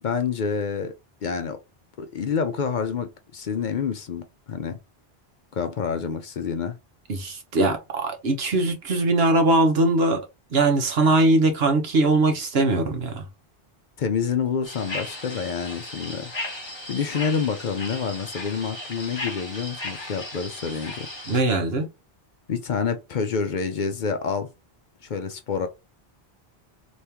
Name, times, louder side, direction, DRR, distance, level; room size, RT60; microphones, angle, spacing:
voice 1, 0.0-0.9 1.2-1.6 2.0-4.8 5.5-6.8 14.0-16.3 16.9-21.1 22.5-24.5 25.0-25.7, left 6 dB, 55° left, 0.6 m, -28 dB
voice 2, 7.1-10.2 10.5-13.2 21.3-21.9, right 2 dB, 75° right, 1.2 m, -21 dB
sound 1, 14.6-21.4, left 2 dB, 25° left, 1.1 m, -36 dB
3.4 x 3.1 x 2.9 m
omnidirectional pair, 1.0 m